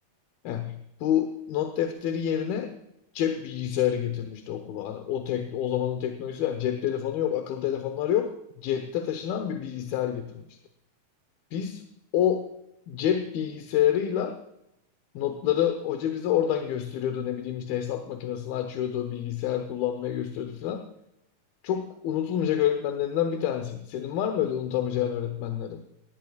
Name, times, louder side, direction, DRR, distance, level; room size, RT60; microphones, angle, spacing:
voice 1, 0.4-2.8 3.1-10.6 11.5-11.8 12.1-12.5 12.9-14.4 15.1-20.9 21.6-25.8, left 10 dB, 70° left, 7 dB, 2.6 m, -28 dB
18.5 x 16.5 x 2.4 m, 0.82 s
omnidirectional pair, 4.8 m